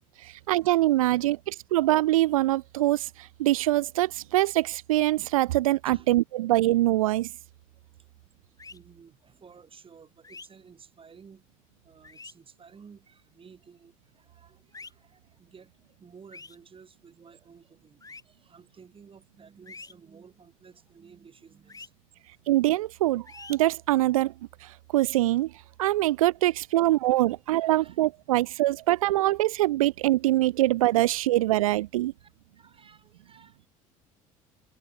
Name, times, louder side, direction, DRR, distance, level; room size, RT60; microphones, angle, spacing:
voice 1, 0.2-7.3 22.5-24.3 24.6-25.5 25.8-32.1, right 16 dB, 80° right, 0.4 m, -24 dB
voice 2, 5.8-6.2 8.7-11.5 11.8-21.9 27.6-28.0 32.2-33.7, right 6 dB, 30° right, 3.7 m, -53 dB
sound 1, 8.6-8.8 10.2-10.5 12.0-12.3 14.7-14.9 16.3-16.6 18.0-18.2 19.7-19.9 21.7-21.9 23.3-23.6, left 4 dB, 20° left, 2.0 m, -45 dB
hypercardioid pair, 65°, 17 cm